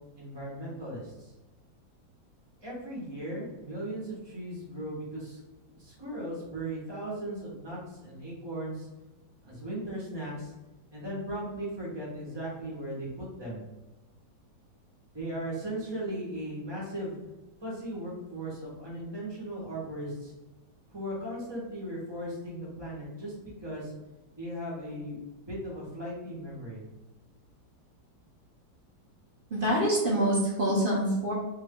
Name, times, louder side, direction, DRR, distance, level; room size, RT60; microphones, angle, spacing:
voice 1, 0.1-1.3 2.6-5.4 5.7-8.9 9.4-10.5 10.9-13.6 15.1-17.1 17.6-20.3 20.9-23.9 24.3-26.8, right 1 dB, 20° right, -6 dB, 0.7 m, -37 dB
voice 2, 29.5-31.3, right 1 dB, 60° right, -5 dB, 0.5 m, -26 dB
2.9 x 2.6 x 3.5 m, 1.1 s
omnidirectional pair, 2.0 m